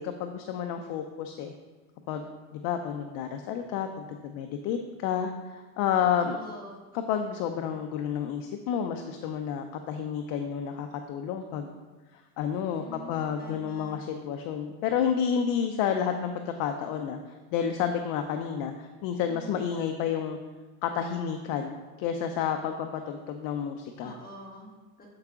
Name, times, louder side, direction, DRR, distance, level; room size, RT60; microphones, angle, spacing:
voice 1, 0.0-1.5 2.1-6.4 6.9-11.8 12.4-17.2 17.5-20.4 20.8-24.1, left 8 dB, 50° left, 5 dB, 0.6 m, -30 dB
voice 2, 6.2-6.8 12.6-14.0 19.2-19.6 24.0-25.2, left 2 dB, 20° left, -2 dB, 1.5 m, -46 dB
7.8 x 4.8 x 3.6 m, 1.3 s
supercardioid pair, 125°, 44 cm